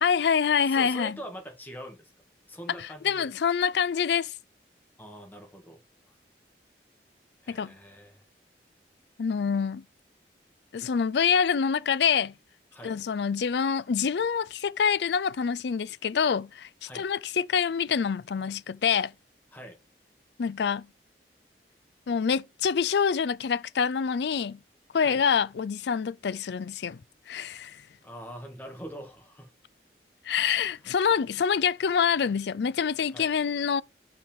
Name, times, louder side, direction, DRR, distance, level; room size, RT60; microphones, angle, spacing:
voice 1, 0.0-1.2 2.8-4.3 7.5-7.7 9.2-9.8 10.7-12.3 12.8-19.1 20.4-20.9 22.1-24.6 24.9-27.0 27.3-27.8 30.2-33.8, left 6 dB, 75° left, 0.4 m, -26 dB
voice 2, 0.7-2.1 2.5-3.3 5.0-6.1 7.4-8.2 12.7-13.0 16.9-17.1 19.5-19.8 25.0-25.2 28.0-29.5 30.8-30.9 33.1-33.3, equal, 10° left, 2.0 m, -43 dB
5.9 x 4.7 x 5.2 m
head